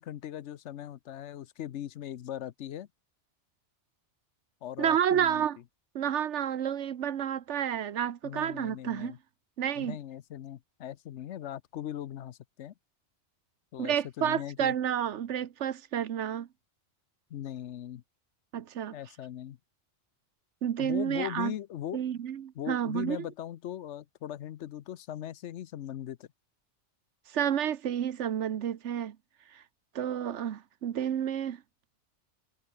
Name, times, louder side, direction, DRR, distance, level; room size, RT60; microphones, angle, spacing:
voice 1, 0.0-2.9 4.6-5.5 8.2-9.2 9.8-12.7 13.7-14.7 17.3-18.0 18.9-19.6 20.8-22.0 22.5-26.3, left 11 dB, 80° left, 1.0 m, -39 dB
voice 2, 4.8-5.6 5.9-9.1 9.6-10.0 13.8-16.5 18.5-19.0 20.6-21.5 21.9-23.2 27.3-29.2 29.5-29.6 29.9-31.6, right 9 dB, 80° right, 1.2 m, -30 dB
omnidirectional pair, 1.2 m